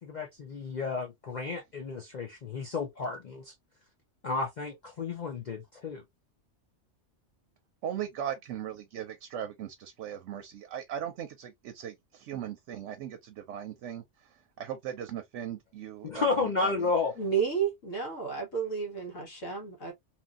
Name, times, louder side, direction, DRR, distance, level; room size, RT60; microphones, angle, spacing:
voice 1, 0.0-3.5 4.2-6.0 16.0-17.1, left 4 dB, 50° left, 0.6 m, -32 dB
voice 2, 7.8-14.0 14.6-16.7, right 10 dB, 70° right, 0.8 m, -38 dB
voice 3, 17.2-19.9, right 7 dB, 80° left, 1.5 m, -31 dB
2.9 x 2.6 x 2.3 m
omnidirectional pair, 1.3 m